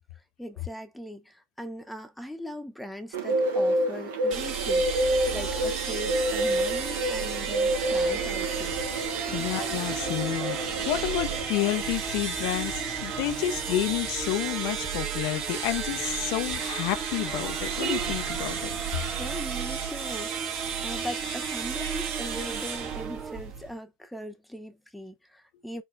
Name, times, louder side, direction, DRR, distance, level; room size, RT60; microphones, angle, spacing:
voice 1, 0.4-8.8 9.3-9.5 19.2-20.6 20.8-25.8, equal, ahead, 0.9 m, -40 dB
Bird, 3.1-11.4, right 1 dB, 75° right, 1.0 m, -28 dB
sound 1, 4.3-23.8, right 7 dB, 55° right, 1.5 m, -33 dB
sound 2, 7.9-23.4, right 5 dB, 20° right, 0.5 m, -40 dB
voice 2, 9.3-18.7, left 14 dB, 60° left, 0.6 m, -30 dB
4.5 x 2.9 x 2.6 m
hypercardioid pair, 80°, 0 cm